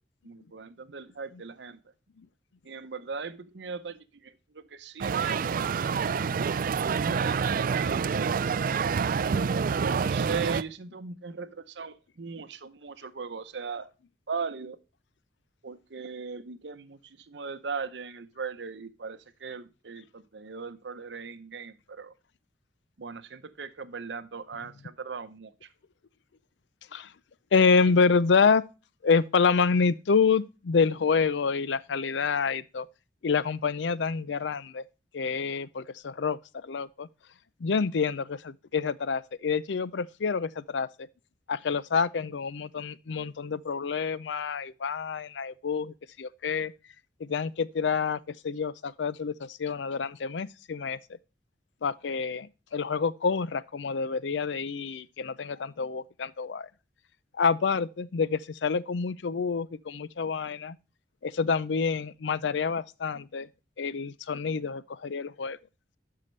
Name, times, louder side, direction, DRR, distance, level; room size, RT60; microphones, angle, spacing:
voice 1, 0.2-1.9 2.6-6.4 6.8-8.4 9.8-13.9 14.3-14.8 15.6-22.1 23.0-25.7, right 5 dB, 75° right, 0.7 m, -39 dB
sound 1, 5.0-10.6, right 6 dB, 50° right, 0.4 m, -27 dB
voice 2, 27.5-28.6 29.0-32.9 33.2-34.8 35.1-37.1 37.6-40.9 41.5-46.7 47.2-51.0 51.8-56.7 57.4-60.8 61.2-63.5 63.8-65.6, left 5 dB, 85° left, 0.5 m, -27 dB
11.5 x 5.7 x 3.2 m
head